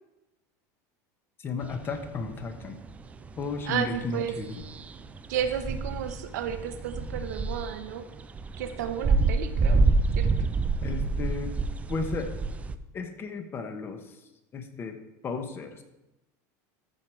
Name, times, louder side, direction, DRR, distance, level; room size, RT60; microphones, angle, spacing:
voice 1, 1.4-2.8 3.4-4.6 10.8-11.5 11.9-12.3 12.9-14.0 14.5-15.0 15.2-15.8, left 4 dB, 25° left, 6 dB, 1.1 m, -34 dB
sound 1, 1.6-12.8, right 3 dB, 15° right, 0.4 m, -28 dB
voice 2, 3.6-4.4 5.3-8.1 8.6-9.8 10.2-10.3, right 8 dB, 85° right, 9 dB, 1.0 m, -32 dB
14.0 x 4.7 x 4.6 m, 0.94 s
supercardioid pair, 145°, 9 cm